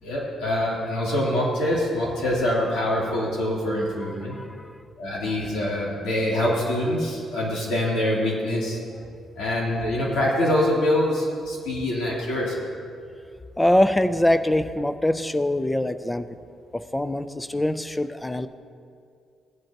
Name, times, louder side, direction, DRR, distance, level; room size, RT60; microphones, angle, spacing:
voice 1, 0.0-4.4 5.0-8.8 9.4-12.6, left 1 dB, 90° left, -5 dB, 3.2 m, -24 dB
voice 2, 4.0-4.5 13.6-16.3 16.7-18.5, left 1 dB, 5° left, 11 dB, 0.3 m, -23 dB
16.5 x 10.5 x 2.9 m, 2.3 s
cardioid pair, 170°, 0 cm